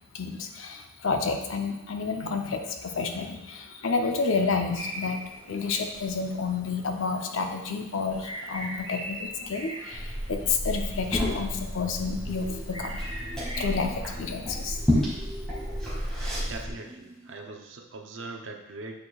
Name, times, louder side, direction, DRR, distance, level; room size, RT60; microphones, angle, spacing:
voice 1, 0.1-5.2 5.5-13.0 13.6-14.8, left 4 dB, 65° left, 4 dB, 0.6 m, -30 dB
sound 1, 4.7-13.6, equal, 25° left, 2.1 m, -42 dB
Liquid, 9.9-16.7, equal, 5° left, 1.9 m, -31 dB
sound 2, 12.3-17.5, right 1 dB, 15° right, 0.6 m, -46 dB
voice 2, 16.4-19.0, right 3 dB, 60° right, 3 dB, 0.7 m, -41 dB
8.4 x 4.8 x 2.4 m, 0.97 s
head